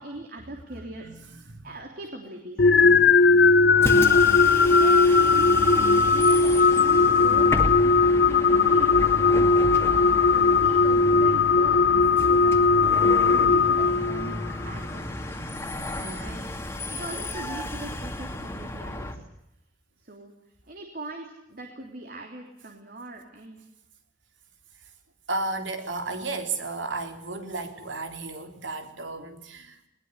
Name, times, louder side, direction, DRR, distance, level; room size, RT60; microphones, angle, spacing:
voice 1, 0.0-1.0 1.6-3.0 3.8-4.2 4.5-9.1 9.8-14.4 14.6-15.1 16.1-16.4 16.9-19.2 20.0-20.3 20.7-23.6, right 1 dB, 55° right, 3 dB, 3.3 m, -39 dB
voice 2, 0.7-1.7 16.0-16.5 25.3-29.8, right 3 dB, 85° right, 6 dB, 3.6 m, -34 dB
sound 1, 2.6-14.6, left 4 dB, 60° left, 0.8 m, -19 dB
Bus, 3.7-19.2, left 1 dB, 15° left, 2.3 m, -33 dB
21.0 x 20.0 x 8.1 m, 0.81 s
head